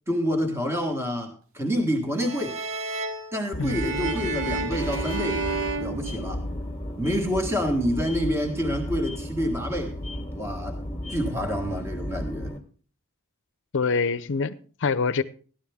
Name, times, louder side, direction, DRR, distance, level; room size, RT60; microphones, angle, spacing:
voice 1, 0.1-2.6 3.3-5.4 5.8-6.4 7.0-9.9 10.3-10.8 11.1-12.5, equal, 10° right, 1.6 m, -27 dB
sound 1, 2.2-6.8, right 2 dB, 65° right, 1.4 m, -32 dB
sound 2, 3.5-12.6, left 1 dB, 10° left, 1.7 m, -34 dB
voice 2, 13.7-15.2, left 4 dB, 55° left, 0.6 m, -25 dB
14.5 x 11.5 x 3.5 m
head